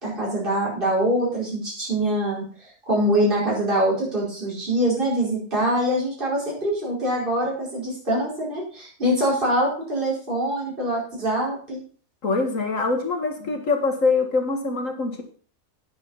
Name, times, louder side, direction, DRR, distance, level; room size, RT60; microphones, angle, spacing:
voice 1, 0.0-11.8, right 1 dB, 40° right, -6 dB, 5.2 m, -24 dB
voice 2, 12.2-15.2, left 3 dB, 70° left, 4 dB, 2.2 m, -24 dB
9.8 x 8.0 x 5.5 m, 0.43 s
omnidirectional pair, 1.4 m